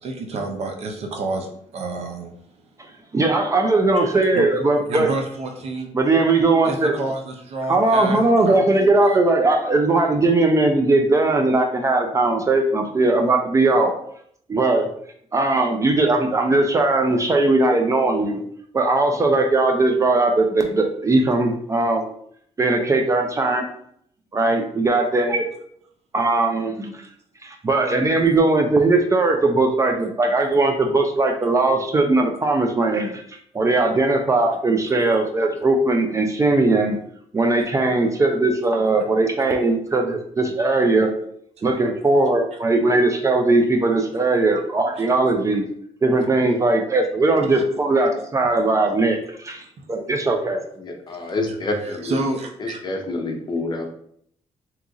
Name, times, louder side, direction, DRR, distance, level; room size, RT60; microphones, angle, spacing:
voice 1, 0.0-2.7 3.0-3.1 3.9-4.5 4.9-5.9 6.6-9.2 34.9-35.0 41.6-41.7 44.9-45.1 47.5-47.6 49.8-49.9 51.1-53.0, right 2 dB, 65° right, 3 dB, 0.7 m, -30 dB
voice 2, 3.1-5.1 5.9-6.9 7.7-14.0 14.5-14.9 15.3-18.4 18.7-22.1 22.6-23.7 24.3-25.5 26.1-27.0 27.4-33.2 33.5-37.0 37.3-41.1 41.6-45.7 46.0-49.6 49.9-50.6, right 2 dB, 25° right, 3 dB, 0.4 m, -19 dB
voice 3, 50.8-52.1 52.8-53.9, left 2 dB, 40° left, 3 dB, 0.7 m, -27 dB
2.9 x 2.4 x 3.7 m, 0.67 s
cardioid pair, 105°, 12 cm